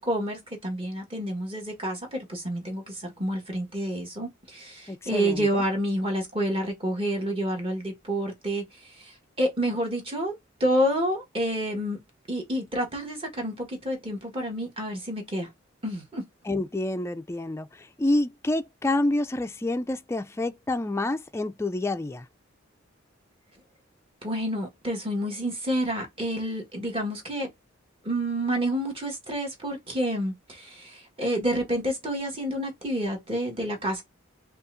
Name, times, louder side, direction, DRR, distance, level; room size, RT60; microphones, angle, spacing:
voice 1, 0.0-10.3 10.6-12.0 12.3-15.5 15.8-16.2 24.2-27.5 28.0-34.0, equal, 25° right, 1.5 m, -29 dB
voice 2, 4.9-5.6 16.5-22.2, left 2 dB, 15° left, 0.3 m, -28 dB
5.4 x 2.4 x 2.6 m
head